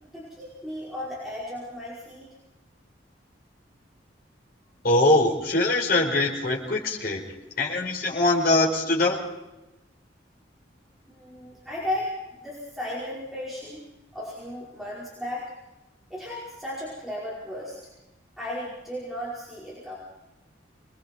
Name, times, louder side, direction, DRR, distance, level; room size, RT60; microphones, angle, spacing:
voice 1, 0.1-2.3 11.1-12.1 12.4-13.8 14.1-15.5 16.1-17.8 18.4-20.0, left 1 dB, ahead, -8 dB, 5.2 m, -35 dB
voice 2, 4.8-7.2 7.6-9.2, left 2 dB, 50° left, -2 dB, 5.0 m, -22 dB
27.0 x 21.0 x 4.6 m, 0.98 s
head